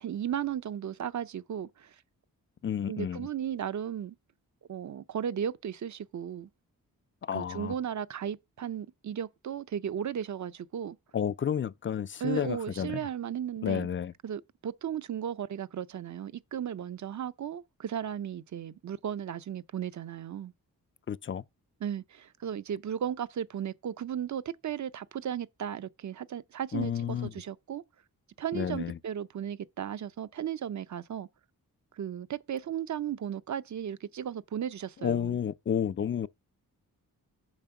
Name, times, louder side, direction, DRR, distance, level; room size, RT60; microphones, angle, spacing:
voice 1, 0.0-2.0 2.9-4.2 4.7-6.5 7.3-11.0 12.2-13.9 14.2-20.5 21.8-27.8 28.4-31.3 31.9-35.3, right 9 dB, 55° right, 0.6 m, -35 dB
voice 2, 2.6-3.3 7.2-7.7 11.1-13.1 13.6-14.1 21.1-21.4 26.7-27.3 28.5-29.0 35.0-36.3, left 8 dB, 35° left, 0.4 m, -31 dB
7.4 x 5.0 x 5.7 m
cardioid pair, 65°, 36 cm